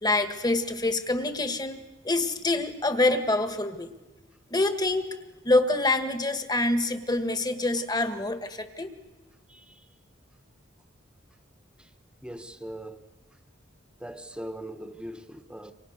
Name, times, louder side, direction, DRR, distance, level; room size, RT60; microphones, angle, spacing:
voice 1, 0.0-3.9 4.5-5.2 5.4-8.9, left 2 dB, 20° left, 1.8 m, -26 dB
voice 2, 9.5-9.9 11.8-11.9 12.2-13.1 14.0-15.7, right 1 dB, 5° right, 1.4 m, -40 dB
29.0 x 25.0 x 6.7 m
head